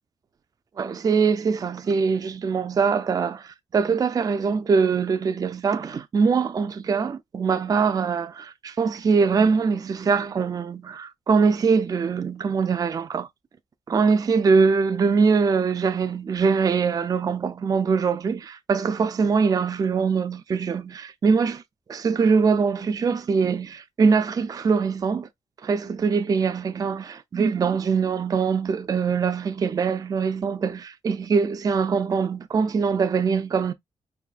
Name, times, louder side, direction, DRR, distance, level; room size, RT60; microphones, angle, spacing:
voice 1, 0.8-13.3 13.9-21.6 21.9-25.3 25.6-33.7, right 5 dB, 30° right, 0.4 m, -23 dB
4.7 x 2.6 x 2.3 m
wide cardioid pair, 160°, 12 cm